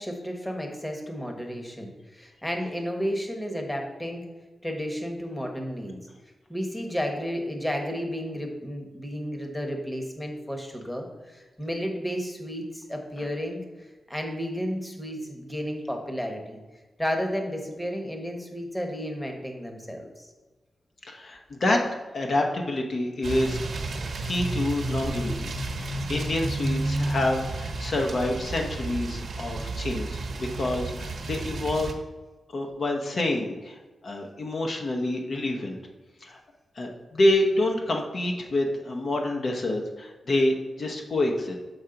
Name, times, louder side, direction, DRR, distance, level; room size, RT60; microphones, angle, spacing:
voice 1, 0.0-4.3 4.6-6.0 6.5-16.6 17.0-20.3, equal, 10° left, 3 dB, 1.1 m, -32 dB
voice 2, 21.0-21.8 22.1-23.6 24.2-25.5 25.8-31.9 32.5-35.8 36.2-36.4 36.8-41.6, left 1 dB, 55° left, 2 dB, 0.8 m, -27 dB
sound 1, 23.2-31.9, right 2 dB, 70° right, 0.9 m, -31 dB
7.2 x 4.5 x 3.9 m, 1.2 s
cardioid pair, 90°, 0 cm